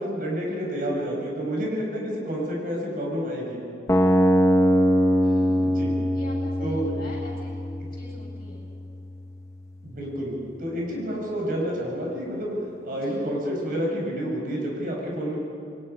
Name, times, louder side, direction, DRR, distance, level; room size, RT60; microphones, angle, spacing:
voice 1, 0.0-3.6 5.6-5.9 6.6-6.9 9.8-12.6 12.8-15.4, equal, 50° right, -2 dB, 5.6 m, -29 dB
sound 1, 3.9-9.9, equal, 15° left, 1.2 m, -23 dB
voice 2, 5.2-5.7 6.1-7.6 7.9-8.7 13.0-13.2, left 1 dB, 50° left, -2 dB, 7.7 m, -43 dB
28.0 x 23.0 x 5.5 m, 2.6 s
head